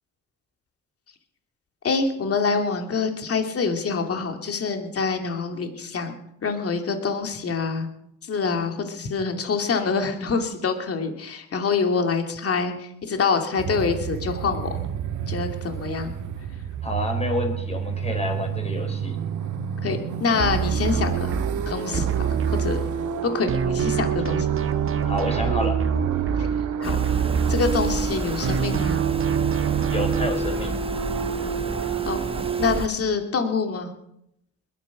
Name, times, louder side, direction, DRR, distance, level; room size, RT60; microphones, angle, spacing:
voice 1, 1.8-7.9 8.3-14.7 15.2-16.1 19.8-21.3 21.7-22.8 23.2-24.5 26.4-26.5 26.8-27.2 27.5-29.0 32.0-32.2 32.6-33.9, left 5 dB, 50° left, 4 dB, 2.8 m, -26 dB
sound 1, 13.6-32.8, right 7 dB, 75° right, 1.8 m, -29 dB
voice 2, 16.8-19.2 25.1-25.8 29.9-30.7, left 1 dB, 20° left, 3 dB, 4.6 m, -29 dB
sound 2, 20.4-23.2 23.5-28.1 28.4-30.3, right 7 dB, 45° right, 1.2 m, -26 dB
sound 3, 26.8-32.9, right 3 dB, 20° right, 1.2 m, -32 dB
21.0 x 10.5 x 6.1 m, 0.76 s
cardioid pair, 90°, 30 cm